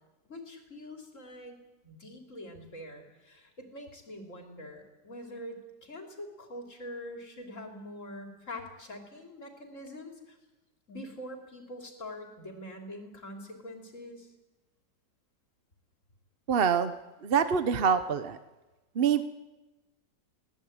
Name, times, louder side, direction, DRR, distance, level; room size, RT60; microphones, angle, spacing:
voice 1, 0.3-1.6 1.8-10.4 10.9-14.3, left 1 dB, 45° left, 3 dB, 3.7 m, -44 dB
voice 2, 16.5-16.9 17.2-18.4 18.9-19.2, right 7 dB, 45° right, 11 dB, 0.9 m, -25 dB
21.0 x 18.0 x 8.8 m, 1.1 s
omnidirectional pair, 1.9 m